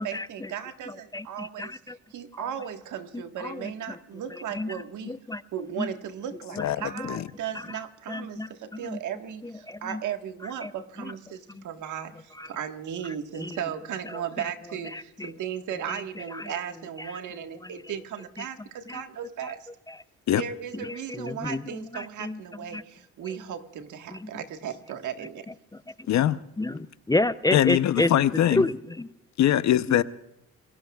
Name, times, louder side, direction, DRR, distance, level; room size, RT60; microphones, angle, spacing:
voice 1, 0.0-5.1 5.5-19.7 20.4-25.5, right 9 dB, 75° right, 1.6 m, -36 dB
voice 2, 1.1-2.0 3.4-3.6 4.5-4.7 5.1-5.4 5.8-5.9 8.1-8.5 8.9-9.0 9.7-10.0 10.6-10.7 12.4-12.5 13.4-13.6 14.9-15.3 16.3-16.4 18.9-19.0 21.2-21.6 21.9-22.4 22.7-22.8 24.2-24.3 26.6-28.1 28.5-29.1 29.9-30.0, left 2 dB, 15° left, 0.5 m, -29 dB
voice 3, 26.1-26.4 27.5-28.7 29.4-30.0, left 12 dB, 65° left, 0.8 m, -22 dB
27.5 x 20.5 x 2.4 m
cardioid pair, 90°, 30 cm